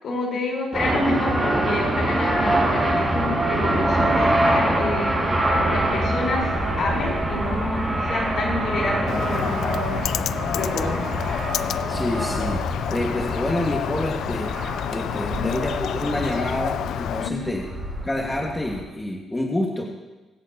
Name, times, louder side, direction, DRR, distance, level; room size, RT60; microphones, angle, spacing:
voice 1, 0.0-5.2 5.7-6.5 6.8-10.1 10.5-11.1 15.2-15.5 17.2-17.5, left 2 dB, 60° left, -2 dB, 4.0 m, -28 dB
sound 1, 0.7-18.8, right 1 dB, 15° right, 4.8 m, -25 dB
Bird, 9.1-17.3, left 10 dB, 75° left, 0.3 m, -29 dB
voice 2, 11.9-14.5 14.9-17.7 18.0-19.8, left 1 dB, 15° left, -1 dB, 1.6 m, -27 dB
24.0 x 8.1 x 2.8 m, 1.2 s
cardioid pair, 90°, 0 cm